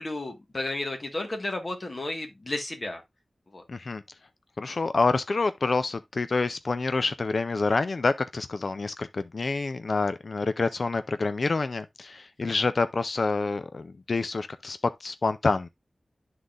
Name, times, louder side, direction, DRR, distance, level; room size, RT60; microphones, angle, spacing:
voice 1, 0.0-3.0 3.5-3.6, left 2 dB, 40° left, 1.6 m, -33 dB
voice 2, 3.7-4.0 4.6-15.7, left 3 dB, 60° left, 0.5 m, -27 dB
11.5 x 3.8 x 2.5 m
wide cardioid pair, 85°, 0 cm